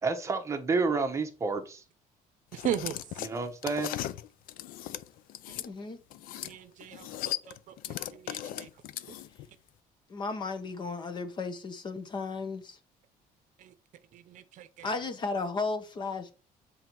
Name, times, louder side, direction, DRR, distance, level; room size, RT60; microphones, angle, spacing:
voice 1, 0.0-1.8 3.2-4.0, right 4 dB, 20° right, 1.0 m, -30 dB
sound 1, 2.5-5.7 6.1-6.6 6.8-9.5, left 12 dB, 75° left, 0.5 m, -37 dB
voice 2, 2.5-3.0 6.4-7.1 7.5-7.6 8.1-8.7 13.6-13.7 14.1-14.9, right 10 dB, 60° right, 0.7 m, -36 dB
voice 3, 5.6-6.0 10.1-12.8 14.8-16.3, left 3 dB, 30° left, 0.9 m, -34 dB
7.8 x 3.9 x 4.5 m
cardioid pair, 160°, 15 cm